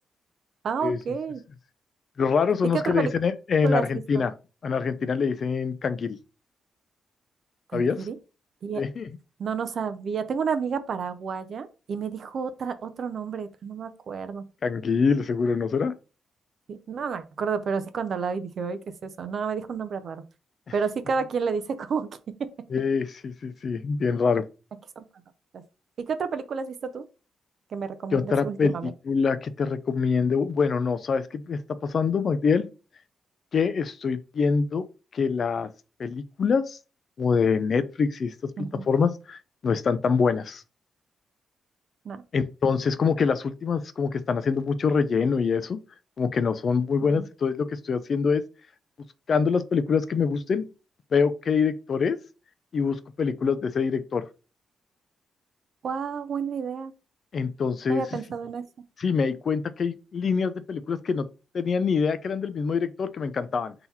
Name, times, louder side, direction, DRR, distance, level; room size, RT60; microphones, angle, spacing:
voice 1, 0.6-1.4 2.7-3.1 3.6-4.2 7.7-8.2 8.6-8.8 9.4-14.5 16.7-20.2 20.7-22.1 22.4-22.5 25.0-25.1 25.5-25.6 26.0-27.0 27.7-28.9 38.6-38.9 42.0-42.2 47.0-47.3 55.8-56.9 57.9-58.6, right 6 dB, 50° right, 0.5 m, -30 dB
voice 2, 2.2-4.3 4.6-6.2 7.7-8.1 8.7-9.1 14.6-15.9 20.7-20.8 22.7-24.4 28.1-32.7 33.5-34.9 35.1-35.7 36.0-36.8 37.2-40.6 42.3-45.8 46.2-48.4 49.3-50.7 51.1-52.2 52.7-54.2 57.3-58.0 59.0-61.3 61.5-63.7, left 5 dB, 45° left, 0.4 m, -25 dB
3.8 x 2.9 x 4.1 m
wide cardioid pair, 155°, 0 cm